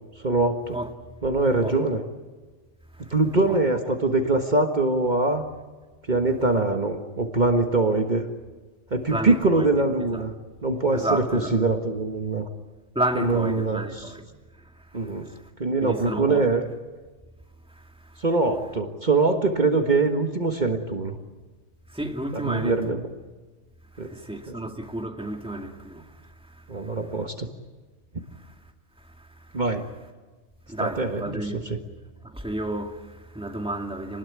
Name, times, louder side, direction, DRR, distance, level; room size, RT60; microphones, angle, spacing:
voice 1, 0.2-0.8 1.2-2.0 3.1-5.4 6.1-8.3 8.9-10.3 10.6-12.5 13.2-14.0 14.9-15.3 15.6-16.6 18.2-21.2 22.4-23.0 24.0-24.1 24.5-24.6 26.7-27.5 29.5-29.9 30.8-31.8, right 3 dB, 40° right, 1.7 m, -23 dB
voice 2, 9.1-9.7 10.1-10.2 10.9-11.5 12.9-15.5 15.8-16.4 17.7-18.2 21.9-23.0 23.9-27.0 28.3-28.5 29.0-29.6 30.7-31.7 32.2-34.2, right 1 dB, 5° right, 2.1 m, -32 dB
27.5 x 20.0 x 9.6 m
omnidirectional pair, 1.2 m